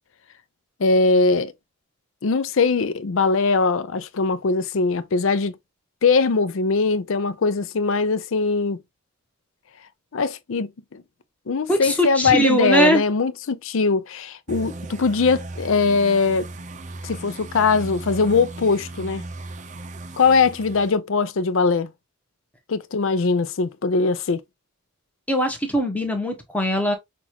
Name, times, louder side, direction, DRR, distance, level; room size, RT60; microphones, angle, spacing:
voice 1, 0.8-1.5 2.2-5.6 6.0-8.8 10.1-11.0 11.5-16.5 17.0-19.2 20.2-21.9 22.7-24.4, left 4 dB, 65° left, 0.5 m, -21 dB
voice 2, 11.7-13.0 25.3-26.9, equal, 5° left, 1.0 m, -21 dB
sound 1, 14.5-21.0, right 2 dB, 35° right, 0.5 m, -37 dB
6.0 x 2.4 x 2.9 m
head